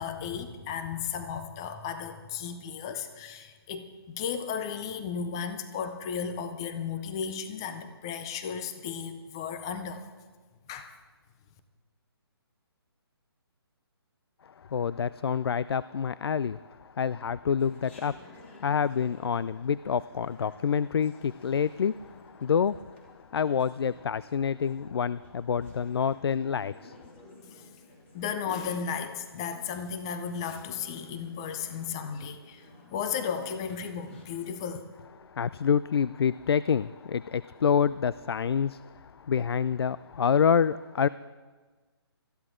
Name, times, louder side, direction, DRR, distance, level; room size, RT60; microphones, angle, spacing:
voice 1, 0.0-10.0 10.7-10.9 28.1-32.6 32.9-34.9, left 7 dB, 10° left, 9 dB, 0.4 m, -34 dB
voice 2, 14.7-23.0 23.3-27.0 35.2-41.1, left 7 dB, 70° left, 18 dB, 0.4 m, -27 dB
Chatter, 17.6-34.7, left 2 dB, 30° left, 2.6 m, -55 dB
20.5 x 13.5 x 3.8 m, 1.4 s
hypercardioid pair, 175°, 13 cm